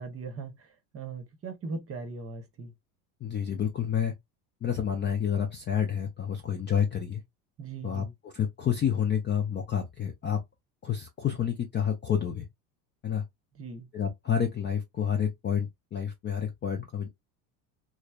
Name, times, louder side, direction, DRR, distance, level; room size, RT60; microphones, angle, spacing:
voice 1, 0.0-2.7 7.6-8.1 13.5-13.9, right 4 dB, 30° right, 0.8 m, -39 dB
voice 2, 3.2-4.1 4.6-7.2 7.8-10.4 10.8-12.5 13.0-13.2 13.9-17.1, left 8 dB, 25° left, 0.4 m, -29 dB
3.1 x 2.0 x 2.2 m
supercardioid pair, 95°, 50 cm